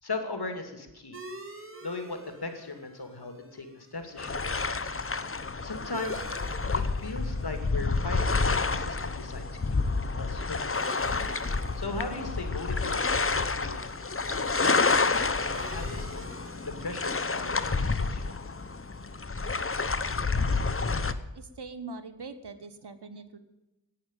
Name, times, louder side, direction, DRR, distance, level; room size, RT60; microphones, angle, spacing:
voice 1, 0.0-1.2 1.8-4.8 5.6-6.2 6.7-9.8 10.2-10.6 11.8-13.3 13.6-13.8 14.3-16.3 16.6-18.4, left 3 dB, 65° left, 6 dB, 2.6 m, -38 dB
sound 1, 1.1-20.3, right 2 dB, 30° right, 2.3 m, -50 dB
sound 2, 4.2-21.1, left 4 dB, 30° left, 0.9 m, -29 dB
voice 2, 21.3-23.4, right 3 dB, 70° right, 10 dB, 1.4 m, -42 dB
11.5 x 9.4 x 9.2 m, 1.0 s
wide cardioid pair, 40°, 42 cm